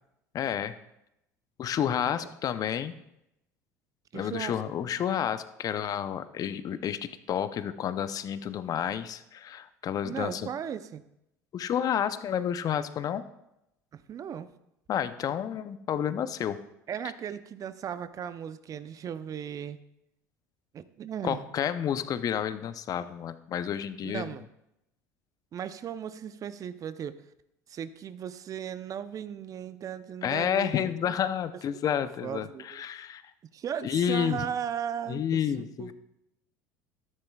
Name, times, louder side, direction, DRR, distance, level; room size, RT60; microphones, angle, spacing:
voice 1, 0.3-0.7 1.6-2.9 4.1-7.0 7.3-10.5 11.5-13.2 14.9-16.6 21.2-24.3 30.2-33.2 33.8-34.4 35.1-35.9, left 9 dB, 45° left, 12 dB, 0.7 m, -30 dB
voice 2, 4.1-4.5 10.0-11.0 13.9-14.5 16.9-19.8 20.7-21.5 24.0-24.4 25.5-27.2 27.7-31.1 32.2-32.8 33.5-35.9, right 8 dB, 40° right, 13 dB, 0.6 m, -37 dB
13.0 x 11.0 x 2.4 m, 0.85 s
hypercardioid pair, 75°, 9 cm